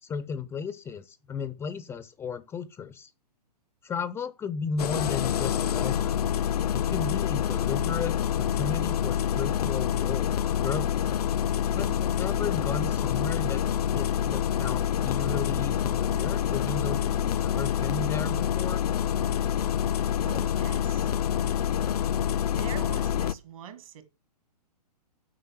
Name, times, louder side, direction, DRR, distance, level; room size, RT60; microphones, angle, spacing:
voice 1, 0.0-3.1 3.8-6.2 6.7-11.0 11.7-13.6 13.9-18.8, left 5 dB, 10° left, 0.5 m, -34 dB
Engine starting, 4.8-23.3, left 9 dB, 65° left, 0.5 m, -27 dB
voice 2, 20.2-21.1 22.4-24.0, right 7 dB, 55° right, 2.1 m, -43 dB
7.7 x 5.3 x 7.5 m
hypercardioid pair, 120°, 21 cm